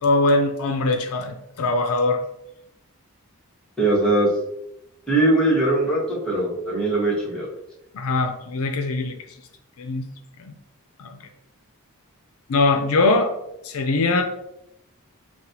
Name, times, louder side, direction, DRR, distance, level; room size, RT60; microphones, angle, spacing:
voice 1, 0.0-2.2 7.9-9.2 9.8-10.1 10.4-10.5 11.0-11.2 12.5-13.3 13.6-14.2, left 2 dB, 70° left, 5 dB, 0.5 m, -21 dB
voice 2, 3.8-4.3 5.1-7.5, right 2 dB, 5° left, -7 dB, 1.3 m, -20 dB
6.0 x 2.4 x 2.7 m, 0.83 s
head